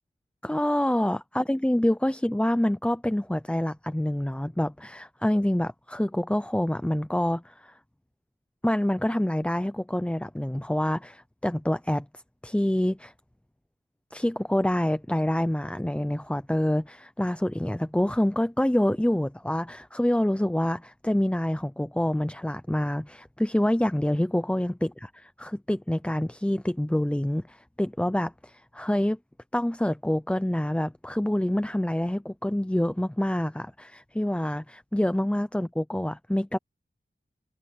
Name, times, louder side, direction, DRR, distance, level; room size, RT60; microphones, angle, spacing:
voice 1, 0.4-7.8 8.6-12.1 12.4-13.1 14.1-29.2 29.5-36.6, left 1 dB, 5° left, 0.6 m, -26 dB
wide cardioid pair, 70°, 21 cm